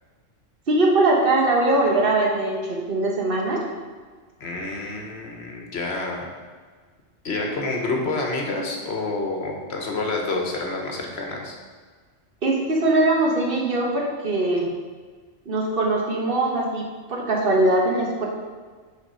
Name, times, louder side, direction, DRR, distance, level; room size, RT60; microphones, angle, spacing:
voice 1, 0.7-3.6 12.4-14.7 15.4-18.3, right 2 dB, 50° right, -1 dB, 1.3 m, -21 dB
voice 2, 4.4-6.3 7.2-11.5, left 2 dB, 60° left, 1 dB, 1.3 m, -28 dB
5.7 x 4.1 x 5.6 m, 1.5 s
omnidirectional pair, 1.3 m